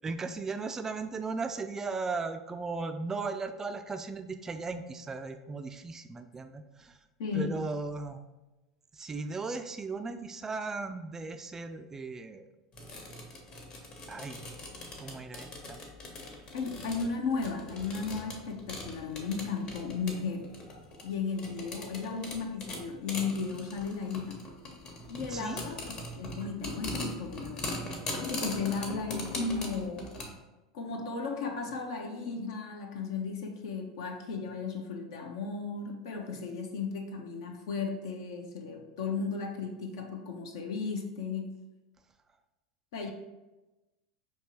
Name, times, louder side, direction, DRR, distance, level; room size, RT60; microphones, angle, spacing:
voice 1, 0.0-7.0 7.3-8.2 8.9-12.5 14.1-14.4 15.0-15.8 25.2-25.6, right 4 dB, 15° right, 8 dB, 0.3 m, -37 dB
voice 2, 7.2-7.6 16.5-20.5 21.0-24.4 25.1-27.8 28.2-30.1 30.7-41.5 42.9-43.1, left 5 dB, 55° left, 2 dB, 0.6 m, -35 dB
sound 1, 12.7-30.3, left 2 dB, 35° left, 1.0 m, -41 dB
5.5 x 2.9 x 2.9 m, 1.1 s
figure-of-eight pair, 80°, 3 cm